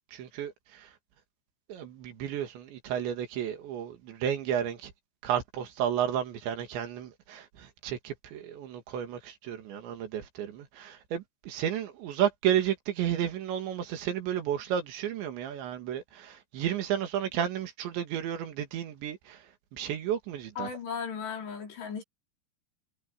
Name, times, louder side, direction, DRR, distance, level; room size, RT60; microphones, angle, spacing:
voice 1, 0.1-0.9 1.7-4.9 5.2-19.4 19.7-20.7, right 9 dB, 85° right, 4.5 m, -32 dB
voice 2, 20.6-22.0, left 6 dB, 70° left, 7.0 m, -36 dB
omnidirectional pair, 5.0 m